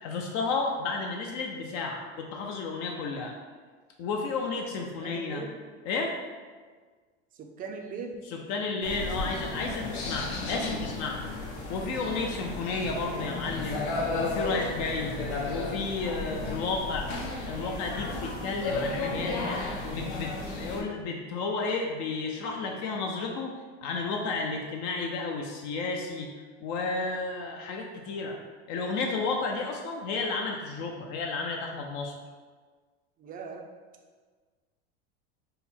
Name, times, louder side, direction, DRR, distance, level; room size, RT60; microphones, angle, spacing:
voice 1, 0.0-3.3 4.0-5.4 5.9-6.2 8.3-11.3 11.7-13.8 14.2-15.1 15.5-17.1 17.5-19.4 19.9-23.5 23.8-26.3 26.6-28.4 28.7-32.1, left 4 dB, 55° left, 1 dB, 0.5 m, -32 dB
voice 2, 5.0-5.6 7.4-8.2 33.2-33.6, right 5 dB, 25° right, 2 dB, 0.4 m, -39 dB
sound 1, 8.8-20.8, left 2 dB, 75° left, 1.0 m, -33 dB
3.8 x 2.1 x 4.2 m, 1.5 s
supercardioid pair, 125°, 33 cm